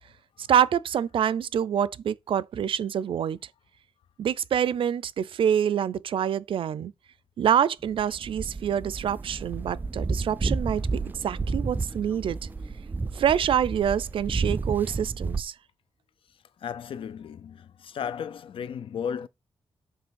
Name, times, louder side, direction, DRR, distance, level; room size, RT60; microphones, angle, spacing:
voice 1, 0.4-3.4 4.2-6.9 7.4-10.8 11.2-12.4 13.2-15.5, right 9 dB, 75° right, 0.5 m, -26 dB
sound 1, 7.9-15.4, right 3 dB, 20° right, 0.4 m, -31 dB
voice 2, 16.6-19.3, left 7 dB, 75° left, 0.6 m, -35 dB
7.7 x 3.2 x 6.3 m
wide cardioid pair, 150°, 9 cm